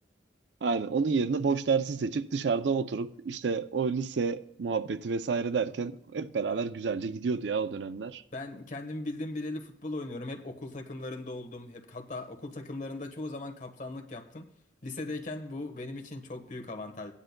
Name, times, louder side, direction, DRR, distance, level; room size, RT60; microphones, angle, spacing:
voice 1, 0.6-8.2, right 5 dB, 85° right, 0.5 m, -29 dB
voice 2, 8.3-14.5 14.8-17.1, left 2 dB, 45° left, 1.3 m, -38 dB
16.5 x 9.9 x 2.2 m
head